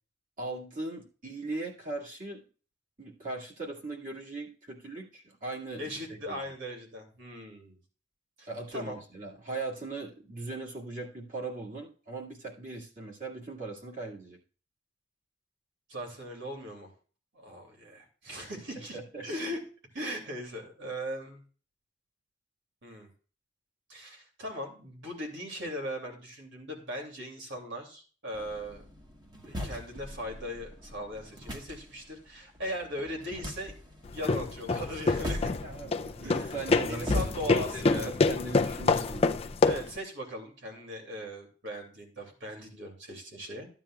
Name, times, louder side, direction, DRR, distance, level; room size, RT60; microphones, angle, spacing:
voice 1, 0.4-2.4 3.0-6.4 8.5-14.4 18.4-18.5 18.9-19.3 35.6-37.1 37.7-39.4, right 3 dB, 40° right, -3 dB, 2.0 m, -39 dB
voice 2, 5.8-7.8 8.4-9.0 15.9-16.9 17.3-19.6 19.9-21.4 22.8-23.1 23.9-28.8 29.4-35.5 36.2-36.5 36.9-38.1 39.6-43.7, equal, 65° right, 2 dB, 2.7 m, -39 dB
sound 1, 28.3-37.5, left 1 dB, 20° right, 1.3 m, -40 dB
sound 2, 34.1-40.0, left 3 dB, 30° left, 0.4 m, -27 dB
13.5 x 9.0 x 2.4 m, 0.38 s
head